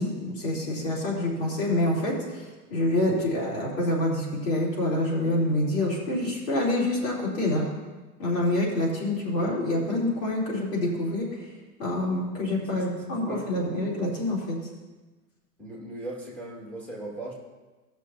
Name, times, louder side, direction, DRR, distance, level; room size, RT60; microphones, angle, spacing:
voice 1, 0.0-2.4 2.7-7.6 8.2-11.3 11.8-14.6, left 1 dB, 85° left, -4 dB, 3.4 m, -26 dB
voice 2, 12.6-13.0 13.3-13.7 15.6-17.3, right 1 dB, 5° left, -3 dB, 2.1 m, -39 dB
17.5 x 6.2 x 2.8 m, 1.2 s
supercardioid pair, 135°, 47 cm